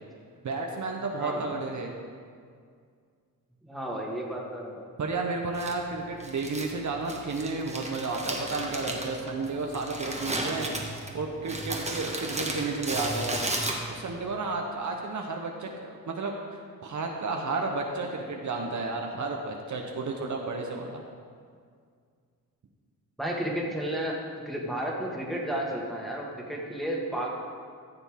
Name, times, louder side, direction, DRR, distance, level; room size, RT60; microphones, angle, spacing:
voice 1, 0.4-1.9 5.0-10.7 11.1-13.5 13.9-21.0, right 3 dB, 55° right, 1 dB, 1.0 m, -32 dB
voice 2, 1.2-1.5 3.6-4.8 23.2-24.2 24.5-27.3, right 1 dB, ahead, -3 dB, 1.8 m, -32 dB
Crumpling crinkling, 5.5-14.2, right 2 dB, 20° right, 1.3 m, -34 dB
14.5 x 6.9 x 3.6 m, 2.1 s
wide cardioid pair, 105°, 35 cm